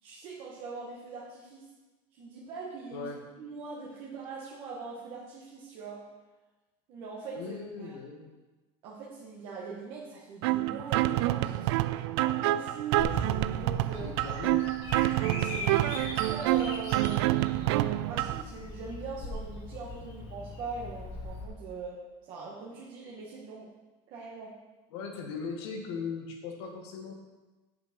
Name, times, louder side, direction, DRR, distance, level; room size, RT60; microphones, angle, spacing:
voice 1, 0.0-1.7 2.1-3.1 3.4-6.0 6.9-7.5 7.8-8.0 8.8-11.7 12.1-14.1 15.0-17.4 18.1-23.7 24.1-24.6, right 4 dB, 40° right, -4 dB, 1.5 m, -42 dB
voice 2, 2.9-3.2 7.3-8.3 13.9-14.7 24.9-27.2, left 5 dB, 75° left, 2 dB, 1.9 m, -39 dB
sound 1, 10.4-18.4, right 15 dB, 75° right, 0.4 m, -27 dB
Bird vocalization bird call bird song, 13.0-21.4, left 2 dB, 35° left, 2.3 m, -41 dB
8.7 x 7.7 x 5.4 m, 1.2 s
cardioid pair, 175°, 14 cm